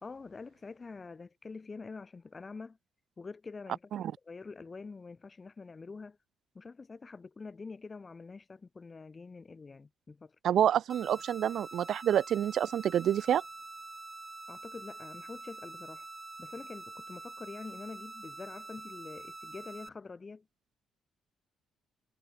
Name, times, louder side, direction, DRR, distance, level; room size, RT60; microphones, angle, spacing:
voice 1, 0.0-2.8 3.2-6.2 6.5-10.4 14.5-16.1 16.4-20.4, left 4 dB, 30° left, 1.2 m, -46 dB
voice 2, 10.4-13.4, right 10 dB, 70° right, 0.3 m, -28 dB
sound 1, 10.9-19.9, right 2 dB, 20° right, 4.9 m, -46 dB
cardioid pair, 90°, 0 cm